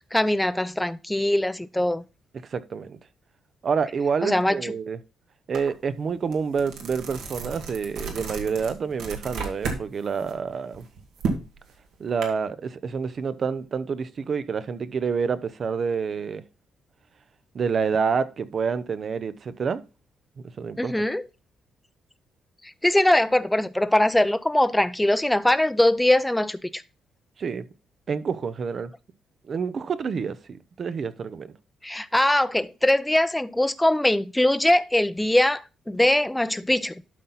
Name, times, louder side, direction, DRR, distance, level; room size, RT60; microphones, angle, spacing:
voice 1, 0.1-2.0 4.2-4.7 20.8-21.3 22.6-26.8 31.8-37.0, left 1 dB, 5° left, 0.6 m, -22 dB
voice 2, 2.4-3.0 3.6-5.0 5.5-10.9 12.0-16.4 17.5-19.8 20.6-20.9 27.4-27.7 28.1-28.9 29.5-31.5, right 5 dB, 50° right, 0.7 m, -28 dB
sound 1, 5.5-5.7 6.1-9.8 10.2-12.2, right 4 dB, 80° right, 2.0 m, -33 dB
12.0 x 4.1 x 4.0 m
cardioid pair, 90°, 0 cm